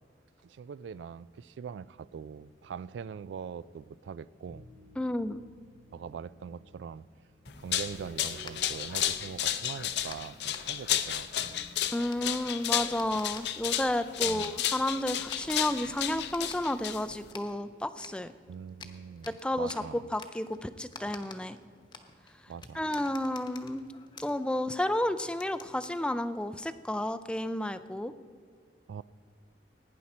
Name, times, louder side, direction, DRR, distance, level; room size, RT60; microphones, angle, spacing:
voice 1, 0.4-4.6 5.9-7.0 7.6-11.6 14.2-14.5 18.5-20.0 22.5-22.8 28.9-29.0, right 7 dB, 80° right, 19 dB, 0.3 m, -42 dB
sound 1, 4.5-11.7, right 1 dB, 40° right, 3.4 m, -55 dB
voice 2, 5.0-5.4 11.9-18.3 19.3-21.6 22.7-23.8 24.2-28.1, left 1 dB, 5° left, 12 dB, 0.3 m, -31 dB
Dog walks on wooden floor, 7.5-17.3, left 11 dB, 70° left, 0.6 m, -32 dB
sound 2, 8.2-26.6, left 4 dB, 25° left, 0.9 m, -52 dB
17.5 x 9.7 x 4.3 m, 2.1 s
head